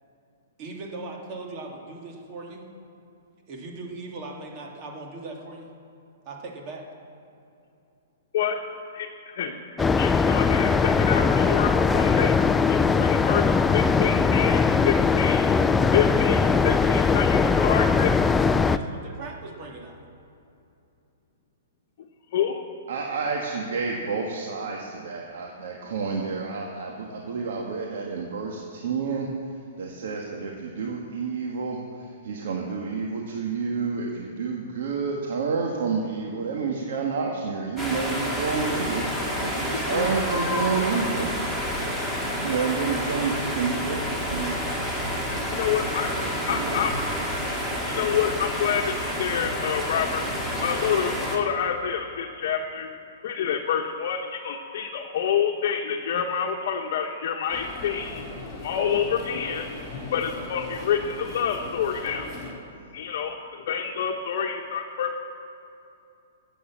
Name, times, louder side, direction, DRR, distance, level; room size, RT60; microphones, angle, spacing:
voice 1, 0.6-2.6 3.5-5.7 6.2-6.8 13.9-14.9 15.2-17.1 18.7-20.0, right 3 dB, 35° right, 0 dB, 2.5 m, -40 dB
voice 2, 8.9-9.5 10.0-12.3 12.7-15.5 15.9-18.1 22.3-22.6 39.7-40.1 45.5-46.1 46.5-46.9 47.8-50.3 50.6-52.9 53.2-58.2 58.6-59.7 60.1-62.3 62.9-65.2, left 8 dB, 55° left, 1 dB, 1.1 m, -27 dB
sound 1, 9.8-18.8, left 5 dB, 10° left, 0.4 m, -20 dB
voice 3, 22.9-29.3 29.8-31.8 32.2-39.0 39.4-41.3 42.4-44.6 46.3-46.8, right 5 dB, 70° right, 0 dB, 1.7 m, -29 dB
sound 2, 37.8-51.4, equal, 5° right, 2.2 m, -29 dB
sound 3, 57.5-62.5, left 2 dB, 30° left, 4.2 m, -39 dB
14.5 x 8.3 x 7.4 m, 2.6 s
hypercardioid pair, 145°, 0 cm